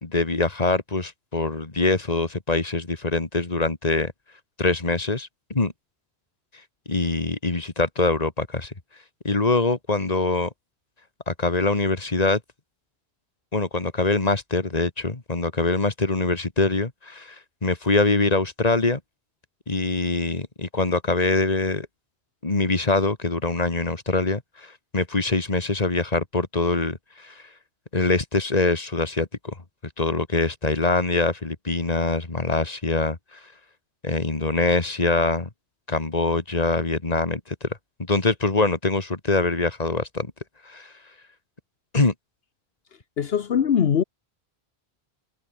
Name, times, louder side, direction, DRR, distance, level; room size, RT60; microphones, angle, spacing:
voice 1, 0.0-4.1 4.6-5.7 6.9-8.7 9.2-10.5 11.3-12.4 13.5-17.4 17.6-19.0 19.7-21.9 22.4-27.4 27.9-29.5 30.0-33.2 34.0-35.5 35.9-37.7 38.1-40.3 40.7-40.9 41.9-42.1, left 3 dB, 35° left, 2.2 m, -24 dB
voice 2, 43.2-44.0, left 8 dB, 65° left, 1.1 m, -21 dB
omnidirectional pair, 1.1 m